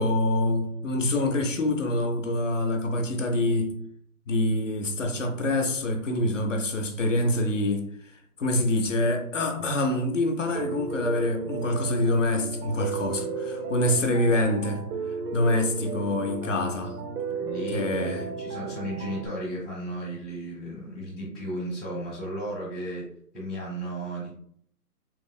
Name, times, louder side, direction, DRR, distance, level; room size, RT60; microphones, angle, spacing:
voice 1, 0.0-3.7 4.3-14.8 15.1-17.0 17.7-18.2, left 1 dB, 55° left, 3 dB, 0.5 m, -26 dB
Piano, 10.5-19.3, right 5 dB, 70° right, 0.6 m, -34 dB
voice 2, 17.3-23.1 23.3-24.3, right 1 dB, ahead, -13 dB, 0.4 m, -34 dB
2.9 x 2.7 x 2.2 m, 0.64 s
hypercardioid pair, 170°, 47 cm